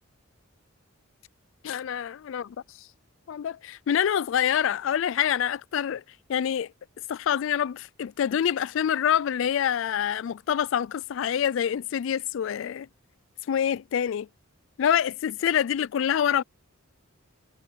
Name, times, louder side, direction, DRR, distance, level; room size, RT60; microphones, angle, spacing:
voice 1, 1.6-2.6 3.3-6.0 6.3-6.7 7.1-12.9 13.5-14.3 14.8-16.4, left 9 dB, 65° left, 0.3 m, -26 dB
head